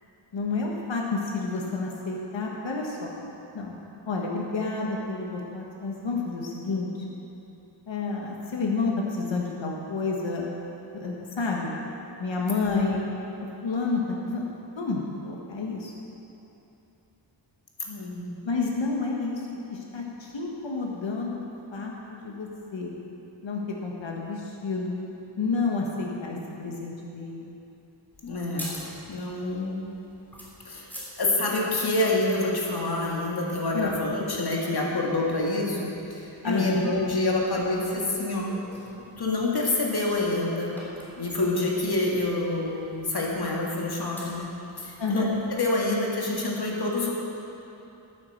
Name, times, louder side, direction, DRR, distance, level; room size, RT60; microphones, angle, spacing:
voice 1, 0.3-3.1 3.5-3.7 4.0-7.1 7.9-10.5 10.9-11.7 12.2-13.0 13.4-14.4 14.8-15.9 18.4-19.4 19.7-21.4 21.7-22.9 23.4-25.0 25.4-27.5 33.7-34.0 36.4-36.8 45.0-45.3, left 3 dB, 90° left, -2 dB, 1.5 m, -30 dB
voice 2, 17.8-18.3 28.2-28.8 29.1-29.8 30.7-30.9 31.2-38.5 39.2-40.7 41.2-44.5 44.8-47.1, left 2 dB, 60° left, -3 dB, 2.1 m, -27 dB
sound 1, 28.1-45.5, equal, 5° left, 3.2 m, -48 dB
11.0 x 9.5 x 6.7 m, 2.9 s
wide cardioid pair, 110°, 44 cm